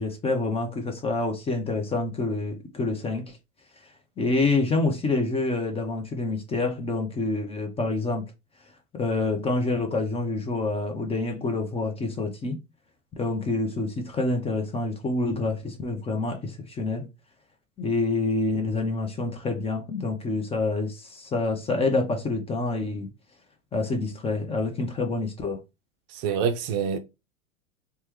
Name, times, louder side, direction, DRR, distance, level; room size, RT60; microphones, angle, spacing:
voice 1, 0.0-3.2 4.2-8.3 8.9-12.6 13.2-17.1 17.8-23.1 23.7-25.6, left 3 dB, 15° left, 0.5 m, -27 dB
voice 2, 26.1-27.0, right 7 dB, 45° right, 0.5 m, -26 dB
3.2 x 2.2 x 3.0 m
hypercardioid pair, 95°, 40 cm